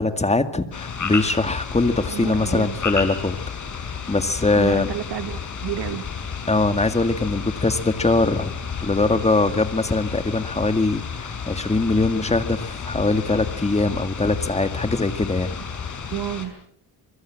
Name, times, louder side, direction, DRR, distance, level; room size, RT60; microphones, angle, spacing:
voice 1, 0.0-3.4 4.1-4.9 6.5-8.5 8.8-15.5, left 3 dB, 15° left, 9 dB, 2.0 m, -22 dB
sound 1, 0.7-16.5, left 6 dB, 50° left, 5.6 m, -32 dB
voice 2, 2.1-2.7 4.5-6.0 15.6-15.7 16.1-16.5, right 12 dB, 85° right, 11 dB, 2.0 m, -30 dB
25.0 x 22.5 x 7.6 m, 0.67 s
cardioid pair, 120°, 39 cm